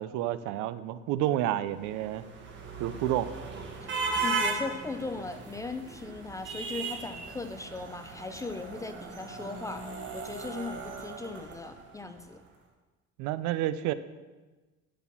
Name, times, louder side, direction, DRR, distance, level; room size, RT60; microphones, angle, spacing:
voice 1, 0.0-2.2 2.8-3.3 13.2-13.9, right 13 dB, 85° right, 14 dB, 0.5 m, -30 dB
sound 1, 1.8-12.1, right 3 dB, 40° right, 1.3 m, -37 dB
voice 2, 4.2-12.4, left 3 dB, 10° left, 8 dB, 0.3 m, -38 dB
11.0 x 4.2 x 5.9 m, 1.2 s
cardioid pair, 165°, 29 cm